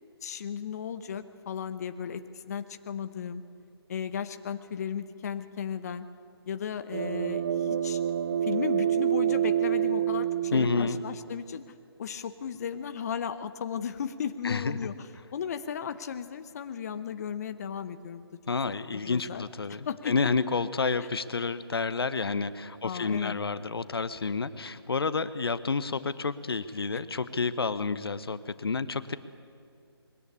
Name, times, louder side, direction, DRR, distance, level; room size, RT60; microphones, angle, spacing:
voice 1, 0.2-3.4 3.9-6.1 6.5-8.0 8.4-11.6 12.0-18.3 18.7-19.4 19.9-20.3 21.0-21.1 22.8-23.4 26.9-27.0, left 7 dB, 40° left, 10 dB, 0.8 m, -35 dB
sound 1, 6.9-11.4, right 10 dB, 35° right, 0.5 m, -28 dB
voice 2, 10.5-11.0 14.4-14.8 18.5-29.2, left 4 dB, 65° left, 14 dB, 0.9 m, -29 dB
21.5 x 17.0 x 8.5 m, 2.4 s
figure-of-eight pair, 145°, 14 cm